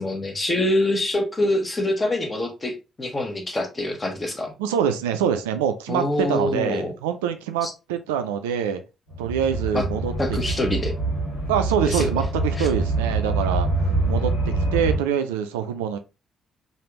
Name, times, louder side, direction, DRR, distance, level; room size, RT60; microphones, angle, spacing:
voice 1, 0.0-4.5 5.9-6.9 7.6-7.7 9.7-9.8 10.2-10.9 11.9-12.2 12.6-12.7, left 1 dB, 25° left, 1.0 m, -25 dB
voice 2, 4.6-8.8 9.2-10.4 11.5-16.0, right 8 dB, 75° right, 0.3 m, -25 dB
sound 1, 9.1-15.0, right 2 dB, 80° left, 1.3 m, -25 dB
3.3 x 2.5 x 3.0 m
figure-of-eight pair, 40°, 0 cm